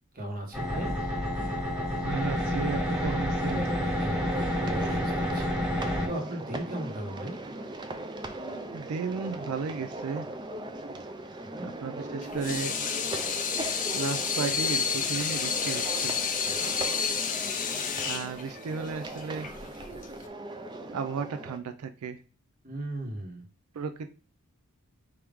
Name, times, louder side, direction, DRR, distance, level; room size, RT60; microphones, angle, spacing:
voice 1, 0.1-0.9 4.0-5.5 5.8-7.3 11.6-11.7 16.4-16.7 22.6-23.4, right 1 dB, 40° right, 1 dB, 1.2 m, -37 dB
sound 1, 0.5-6.1, equal, 5° right, 1.4 m, -29 dB
voice 2, 2.0-3.7 8.7-10.3 11.6-12.8 13.9-16.1 18.0-19.5 20.9-22.2 23.7-24.1, right 5 dB, 90° right, 7 dB, 0.4 m, -34 dB
sound 2, 2.9-21.6, right 2 dB, 20° right, 0.4 m, -39 dB
Water tap faucet / Sink (filling or washing), 12.2-20.3, left 6 dB, 35° left, 0.5 m, -30 dB
4.9 x 3.0 x 3.5 m, 0.35 s
head